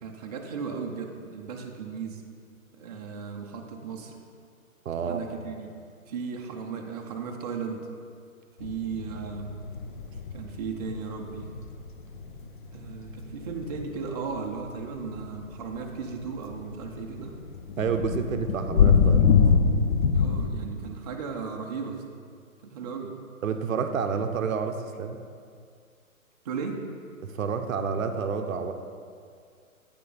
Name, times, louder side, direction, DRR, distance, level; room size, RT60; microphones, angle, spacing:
voice 1, 0.0-2.2 2.8-4.2 5.0-5.7 6.1-7.9 8.6-9.6 10.3-11.5 12.7-17.4 20.1-22.0 22.6-23.2 26.4-26.8, right 5 dB, 30° right, 1 dB, 0.5 m, -36 dB
voice 2, 4.9-5.2 17.8-19.4 23.4-25.2 27.2-28.7, right 6 dB, 65° right, 7 dB, 0.7 m, -29 dB
sound 1, 8.6-14.0 14.5-20.5, left 6 dB, 40° left, 0.4 m, -24 dB
8.6 x 5.3 x 3.9 m, 2.2 s
figure-of-eight pair, 130°, 42 cm